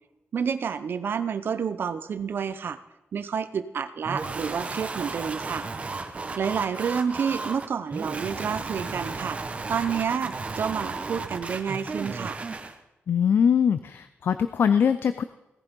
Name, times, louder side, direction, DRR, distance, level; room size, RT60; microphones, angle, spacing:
voice 1, 0.3-2.8 3.1-5.7 6.4-9.4 9.7-12.4, right 7 dB, 60° right, 12 dB, 0.8 m, -29 dB
sound 1, 4.0-12.8, right 3 dB, 30° right, 1.1 m, -34 dB
voice 2, 13.1-15.2, left 7 dB, 60° left, 12 dB, 0.5 m, -22 dB
17.0 x 11.0 x 5.3 m, 0.98 s
wide cardioid pair, 155°, 4 cm